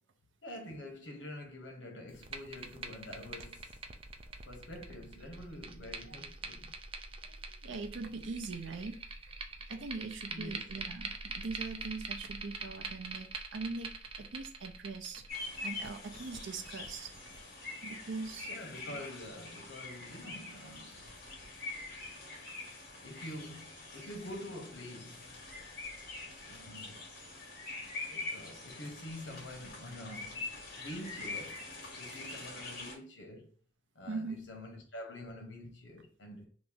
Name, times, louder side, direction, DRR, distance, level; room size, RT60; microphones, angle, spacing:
voice 1, 0.4-3.8 4.4-6.7 10.3-10.6 18.5-21.1 23.0-25.4 26.4-27.0 28.0-30.4 30.8-33.5 33.9-36.5, left 1 dB, 75° left, 1.0 m, -47 dB
sound 1, 2.1-17.4, right 4 dB, 30° right, 0.4 m, -45 dB
voice 2, 7.3-9.0 9.7-17.1 17.8-18.5 34.1-34.5, right 3 dB, 85° right, 0.6 m, -41 dB
sound 2, 15.3-32.9, left 3 dB, 60° left, 1.3 m, -44 dB
3.0 x 2.6 x 3.7 m
head